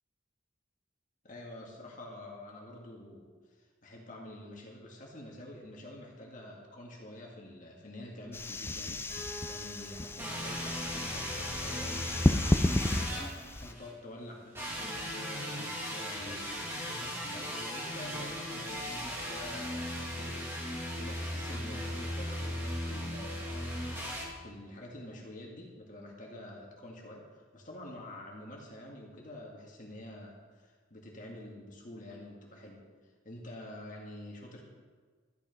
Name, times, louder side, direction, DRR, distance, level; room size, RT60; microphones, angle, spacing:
voice 1, 1.2-34.6, left 1 dB, 40° left, -2 dB, 2.1 m, -48 dB
sound 1, 8.3-13.7, left 1 dB, 10° left, 0.4 m, -32 dB
Keyboard (musical), 9.1-13.0, right 1 dB, 50° right, 2.7 m, -51 dB
sound 2, 10.2-13.9 14.5-24.2, equal, 10° right, 2.4 m, -37 dB
13.5 x 10.0 x 5.3 m, 1.5 s
head